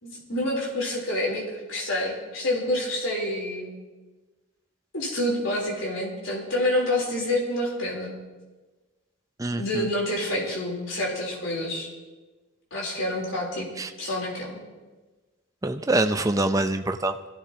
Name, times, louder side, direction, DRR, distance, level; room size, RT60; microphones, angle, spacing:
voice 1, 0.0-3.7 4.9-8.2 9.6-11.9 12.7-13.7 14.0-14.6, left 1 dB, 75° left, -3 dB, 3.7 m, -28 dB
voice 2, 9.4-9.9 13.8-13.9 15.6-17.1, right 2 dB, 15° right, 7 dB, 0.6 m, -25 dB
21.0 x 15.0 x 2.9 m, 1.2 s
head